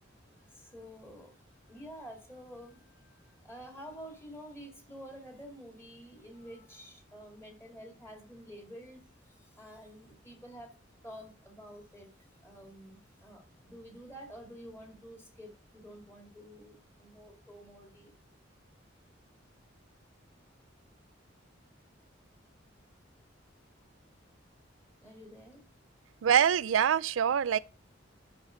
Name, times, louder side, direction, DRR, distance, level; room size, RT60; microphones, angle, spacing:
voice 1, 0.5-1.4 1.7-10.8 11.0-12.1 12.4-18.1 25.0-25.6, equal, 15° left, 2.3 m, -49 dB
voice 2, 26.2-27.6, right 8 dB, 85° right, 0.4 m, -25 dB
10.0 x 5.5 x 5.1 m
head